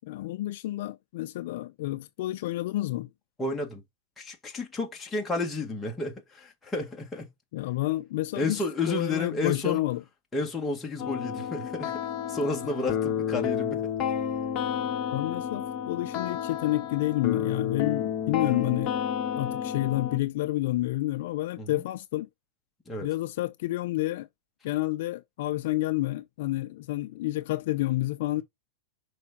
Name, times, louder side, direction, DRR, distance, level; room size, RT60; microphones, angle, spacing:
voice 1, 0.0-3.1 7.5-10.0 15.1-18.9 19.3-22.3 23.0-24.3 24.6-28.4, left 17 dB, 55° left, 0.5 m, -29 dB
voice 2, 3.4-3.8 4.2-7.3 8.4-9.8 10.3-12.0 12.3-13.9 21.6-21.8 22.9-23.1, left 2 dB, 10° left, 1.8 m, -31 dB
sound 1, 11.0-20.2, left 9 dB, 30° left, 1.4 m, -31 dB
6.1 x 4.8 x 4.2 m
supercardioid pair, 165°, 0 cm